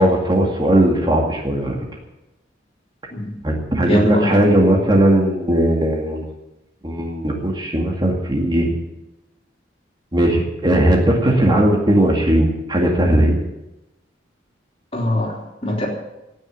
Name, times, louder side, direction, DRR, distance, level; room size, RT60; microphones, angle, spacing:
voice 1, 0.0-1.8 3.4-6.2 6.8-8.7 10.1-13.4, right 1 dB, 25° right, 0 dB, 2.1 m, -17 dB
voice 2, 3.8-4.4 14.9-15.9, left 1 dB, 30° left, 0 dB, 3.1 m, -22 dB
17.5 x 6.6 x 9.6 m, 0.95 s
head